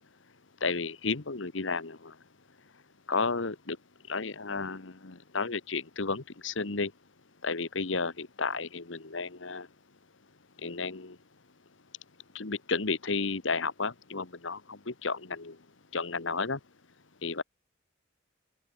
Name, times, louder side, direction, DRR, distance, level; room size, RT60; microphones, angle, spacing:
voice 1, 0.6-2.1 3.1-3.8 4.1-6.9 7.4-9.7 10.6-11.2 12.3-15.6 15.9-16.6 17.2-17.4, left 4 dB, 70° left, 1.4 m, -32 dB
open air
head